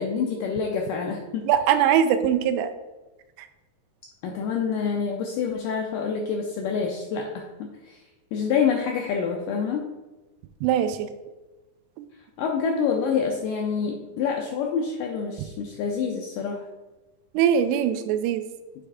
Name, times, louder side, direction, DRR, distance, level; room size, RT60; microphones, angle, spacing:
voice 1, 0.0-1.5 4.2-8.0 8.3-9.9 12.4-16.7, left 6 dB, 85° left, 1 dB, 1.9 m, -27 dB
voice 2, 1.5-2.7 10.6-11.1 17.4-18.4, right 9 dB, 85° right, 10 dB, 2.5 m, -21 dB
8.8 x 3.4 x 4.8 m, 1.1 s
omnidirectional pair, 4.5 m